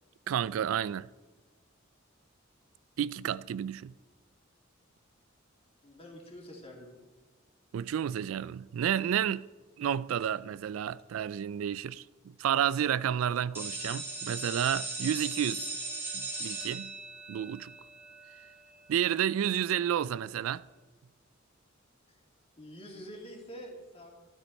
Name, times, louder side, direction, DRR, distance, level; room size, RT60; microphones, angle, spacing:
voice 1, 0.3-1.1 3.0-3.9 7.7-9.5 9.8-15.7 16.1-16.9 17.3-17.7 18.9-20.6, right 9 dB, 75° right, 0.3 m, -31 dB
voice 2, 5.8-7.0 22.6-24.1, equal, 30° left, 2.6 m, -46 dB
sound 1, 13.5-19.2, right 3 dB, 10° right, 2.1 m, -39 dB
13.0 x 12.5 x 4.2 m
head